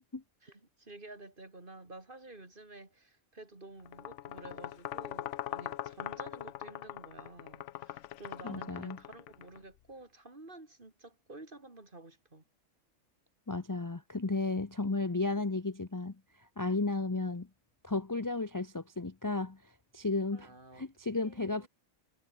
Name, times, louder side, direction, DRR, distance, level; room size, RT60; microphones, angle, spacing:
voice 1, 0.4-12.4 17.1-17.3 20.3-20.8 21.2-21.7, right 2 dB, 40° right, 3.5 m, -51 dB
sound 1, 3.9-9.6, left 13 dB, 70° left, 0.9 m, -41 dB
voice 2, 8.4-9.0 13.5-16.2 16.6-17.5 17.8-19.6 19.9-20.5 20.8-21.7, left 3 dB, 20° left, 0.7 m, -33 dB
omnidirectional pair, 1.4 m